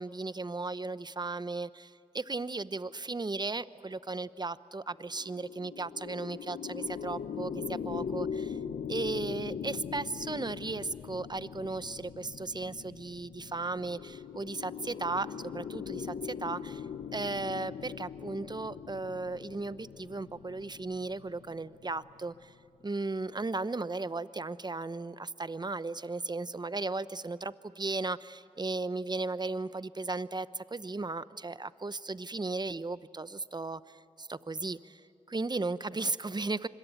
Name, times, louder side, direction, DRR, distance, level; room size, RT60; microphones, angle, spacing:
voice 1, 0.0-8.6 8.9-16.8 17.1-22.5 22.8-35.0 35.3-36.7, right 3 dB, 30° right, 15 dB, 0.8 m, -36 dB
sound 1, 5.1-22.5, left 7 dB, 85° left, 0.8 m, -41 dB
26.0 x 22.0 x 9.2 m, 2.3 s
cardioid pair, 40°, 14 cm